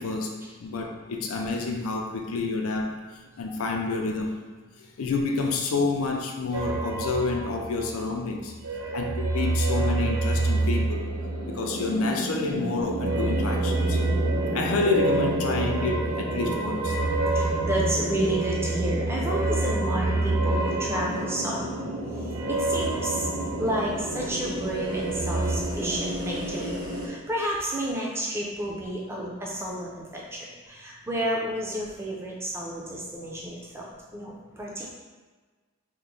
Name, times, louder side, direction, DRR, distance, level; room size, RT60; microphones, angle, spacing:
voice 1, 0.0-0.3 0.6-3.0 3.4-4.4 5.0-8.5 8.9-11.1 11.5-14.0 14.5-17.0, left 3 dB, 75° left, 2 dB, 0.4 m, -28 dB
sound 1, 6.5-8.2 8.5-12.0 12.9-24.2 24.6-25.6, right 3 dB, 80° right, 0.4 m, -28 dB
sound 2, 9.5-27.1, equal, 60° right, 1.1 m, -33 dB
voice 2, 17.3-21.7 22.5-23.3 23.6-26.7 27.0-34.9, right 1 dB, 10° right, -3 dB, 0.4 m, -31 dB
2.9 x 2.1 x 3.7 m, 1.4 s
head